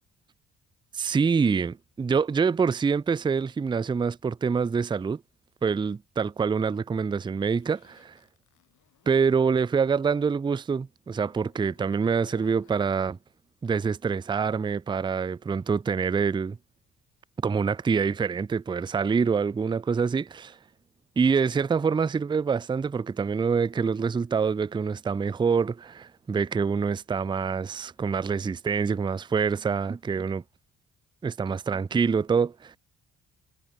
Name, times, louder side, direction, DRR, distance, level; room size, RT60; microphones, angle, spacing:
voice 1, 0.9-5.2 5.6-8.1 9.1-13.2 13.6-16.6 17.4-20.6 21.2-30.4 31.2-32.8, right 5 dB, 15° right, 0.4 m, -26 dB
Zipper (clothing), 7.5-10.0 10.3-10.6 11.2-12.8, left 13 dB, 75° left, 3.0 m, -58 dB
cardioid pair, 90°, 30 cm